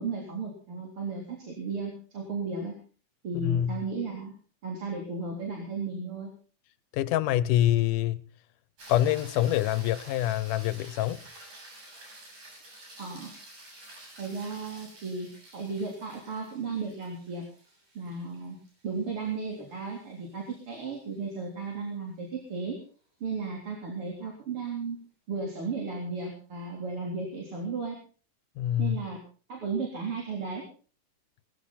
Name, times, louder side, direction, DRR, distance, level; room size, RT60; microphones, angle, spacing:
voice 1, 0.0-2.8 3.2-4.3 4.6-6.3 13.0-13.3 14.2-15.3 15.5-17.4 17.9-18.6 18.8-22.8 23.2-25.0 25.3-28.0 28.8-29.2 29.5-30.6, right 4 dB, 45° right, 4.4 m, -34 dB
voice 2, 3.3-3.8 6.9-8.2 8.9-11.2 28.6-29.0, left 12 dB, 85° left, 2.4 m, -26 dB
sound 1, 8.8-21.2 25.7-25.8, right 1 dB, 75° right, 8.7 m, -50 dB
19.5 x 15.5 x 4.1 m
omnidirectional pair, 3.6 m